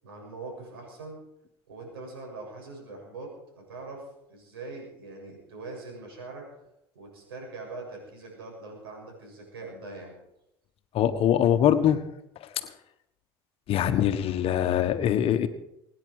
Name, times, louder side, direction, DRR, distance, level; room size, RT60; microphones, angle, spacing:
voice 1, 0.0-1.2 1.7-6.5 6.9-10.1, right 3 dB, 90° right, 0 dB, 7.2 m, -42 dB
voice 2, 10.9-12.0 13.7-15.5, left 10 dB, 55° left, 9 dB, 1.3 m, -23 dB
24.0 x 10.0 x 4.8 m, 0.83 s
hypercardioid pair, 80°, 12 cm